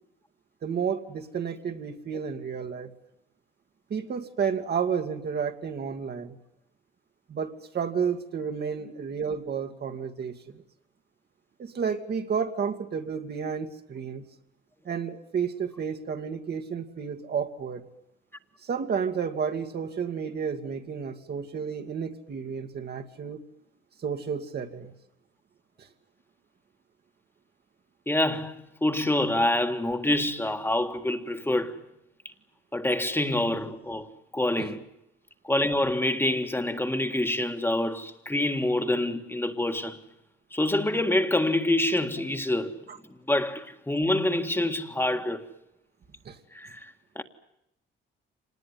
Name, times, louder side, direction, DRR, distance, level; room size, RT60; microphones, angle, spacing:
voice 1, 0.6-2.9 3.9-6.4 7.3-10.6 11.6-14.3 14.9-17.9 18.6-23.4 24.0-24.9 34.6-34.7 42.9-43.0 46.2-46.4, right 6 dB, 55° right, 2.3 m, -31 dB
voice 2, 28.1-31.8 32.7-34.1 34.3-34.8 35.4-40.0 40.5-42.8 43.3-45.4 46.5-47.2, left 1 dB, 10° left, 1.8 m, -26 dB
26.0 x 20.0 x 9.6 m
cardioid pair, 90°, 20 cm